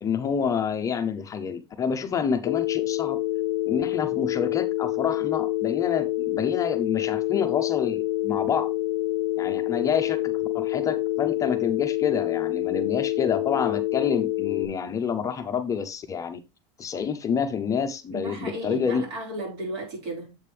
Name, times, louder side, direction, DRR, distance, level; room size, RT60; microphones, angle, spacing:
voice 1, 0.0-3.2 3.7-8.7 9.4-16.4 16.8-19.0, left 7 dB, 25° left, 0.6 m, -28 dB
Telephone, 2.5-14.7, left 16 dB, 90° left, 0.5 m, -27 dB
voice 2, 18.1-20.4, right 1 dB, 65° right, 4.8 m, -34 dB
7.6 x 5.1 x 3.3 m
supercardioid pair, 140°, 15 cm